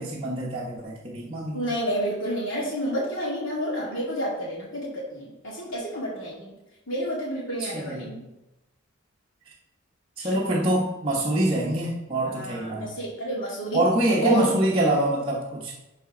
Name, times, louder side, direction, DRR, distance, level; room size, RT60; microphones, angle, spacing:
voice 1, 0.0-1.7 7.6-8.1 10.2-12.9 13.7-15.7, right 1 dB, 25° right, -5 dB, 0.9 m, -25 dB
voice 2, 1.5-6.5 6.9-8.2 10.2-10.4 12.3-13.8 14.2-15.0, equal, 70° left, -6 dB, 2.5 m, -30 dB
11.5 x 4.1 x 3.8 m, 0.98 s
head